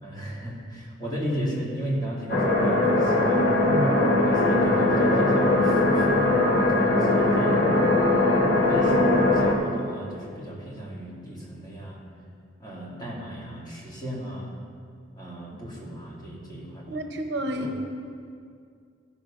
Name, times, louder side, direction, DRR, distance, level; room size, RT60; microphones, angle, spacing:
voice 1, 0.0-3.4 4.3-7.9 8.7-12.0 12.6-14.5 15.2-17.0 17.5-17.7, equal, 20° left, -5 dB, 2.3 m, -35 dB
sound 1, 2.3-9.5, left 2 dB, 55° left, 1.7 m, -20 dB
voice 2, 16.9-17.8, equal, 60° right, 4 dB, 0.8 m, -29 dB
15.0 x 5.8 x 5.1 m, 2.3 s
head